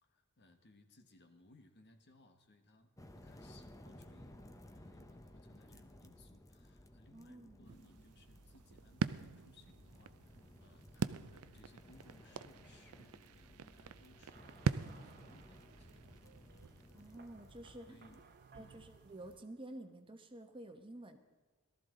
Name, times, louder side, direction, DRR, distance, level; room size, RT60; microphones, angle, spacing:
voice 1, 0.0-16.2 17.9-18.2 18.5-18.9, left 2 dB, 50° left, 6 dB, 1.3 m, -65 dB
sound 1, 3.0-18.2, left 1 dB, 15° left, 0.8 m, -58 dB
voice 2, 7.1-7.6 16.9-17.9 18.5-21.2, right 1 dB, 25° right, 6 dB, 1.1 m, -51 dB
sound 2, 7.7-19.4, right 5 dB, 85° right, 0.5 m, -44 dB
sound 3, 14.1-19.9, right 4 dB, 45° right, 1.1 m, -66 dB
18.0 x 13.5 x 3.9 m, 1.3 s
head